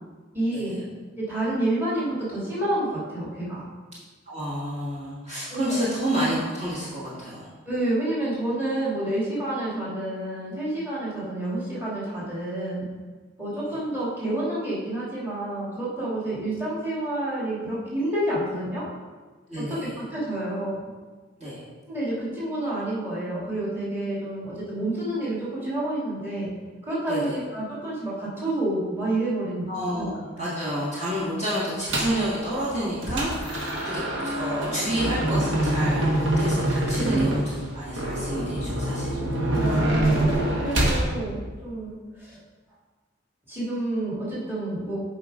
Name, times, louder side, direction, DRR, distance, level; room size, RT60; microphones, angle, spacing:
voice 1, 0.3-0.8 1.2-3.7 5.5-5.8 7.7-12.9 13.4-18.8 19.6-19.8 20.1-20.9 21.9-26.5 26.8-30.1 37.0-37.3 39.5-42.4 43.5-45.0, right 1 dB, 10° right, -8 dB, 2.3 m, -29 dB
voice 2, 4.3-7.4 19.5-19.9 21.4-21.6 27.1-27.3 29.7-39.1, equal, 35° right, -9 dB, 1.8 m, -29 dB
sound 1, 31.9-32.2 32.7-41.1, right 1 dB, 70° right, 1.3 m, -25 dB
8.2 x 5.0 x 4.9 m, 1.4 s
head